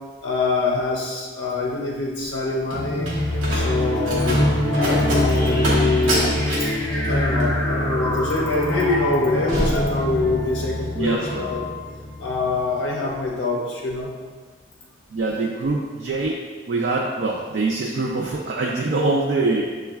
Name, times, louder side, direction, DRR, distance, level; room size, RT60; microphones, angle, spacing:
voice 1, 0.2-3.1 3.5-4.4 4.8-6.3 7.1-11.6 12.2-14.1, left 3 dB, 75° left, -2 dB, 0.5 m, -24 dB
Slam, 2.2-10.6 10.9-11.4, right 1 dB, 90° right, 0.8 m, -29 dB
sound 1, 2.7-12.9, left 1 dB, 15° left, 0.4 m, -24 dB
voice 2, 10.9-11.5 15.1-16.4 16.7-19.7, right 3 dB, 60° right, -2 dB, 0.4 m, -24 dB
6.4 x 2.2 x 2.3 m, 1.5 s
head